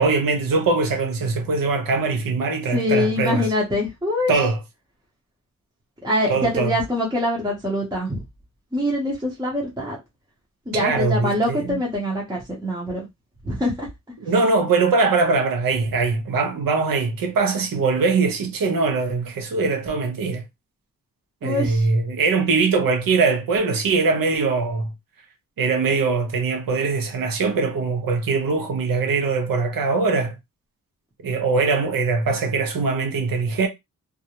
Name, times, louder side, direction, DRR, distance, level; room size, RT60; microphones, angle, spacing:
voice 1, 0.0-3.5 4.3-4.6 6.3-6.8 10.7-11.8 14.2-20.4 21.4-24.9 25.6-30.3 31.2-33.7, right 4 dB, 75° right, 0.7 m, -22 dB
voice 2, 2.7-4.3 6.0-8.2 8.7-10.0 10.7-13.0 13.4-13.9 21.4-21.9, left 1 dB, 10° right, 0.6 m, -24 dB
2.4 x 2.0 x 2.8 m
wide cardioid pair, 175°, 34 cm